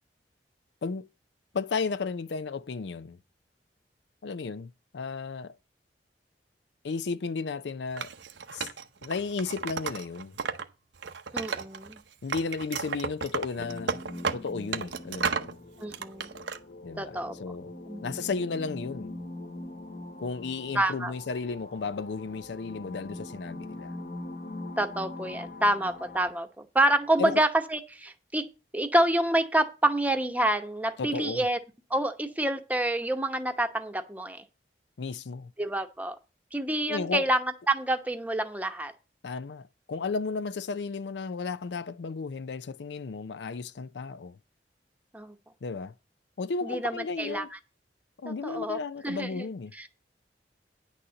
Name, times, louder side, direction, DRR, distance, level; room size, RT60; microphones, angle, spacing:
voice 1, 1.5-3.2 4.2-5.6 6.8-8.1 8.5-8.7 9.0-10.4 12.2-14.0 14.3-15.6 16.8-17.7 18.0-19.2 20.2-24.0 27.2-27.4 31.0-31.5 35.0-35.5 36.9-37.3 39.2-44.4 45.6-45.9 46.4-47.5 48.2-49.7, left 4 dB, 75° left, 0.5 m, -34 dB
Wood, 8.0-10.6 11.0-12.0 12.3-15.5 15.9-16.6, right 5 dB, 85° right, 0.8 m, -33 dB
voice 2, 11.3-12.0 15.8-16.3 17.0-17.3 17.8-18.0 20.7-21.1 24.8-28.4 28.7-31.6 31.9-34.4 35.6-36.2 36.5-38.9 45.1-45.3 46.6-47.4 48.3-48.8 49.0-49.5 49.8-49.9, right 1 dB, 10° right, 0.9 m, -27 dB
sound 1, 13.6-26.3, left 2 dB, 50° left, 1.2 m, -42 dB
9.9 x 4.2 x 7.5 m
head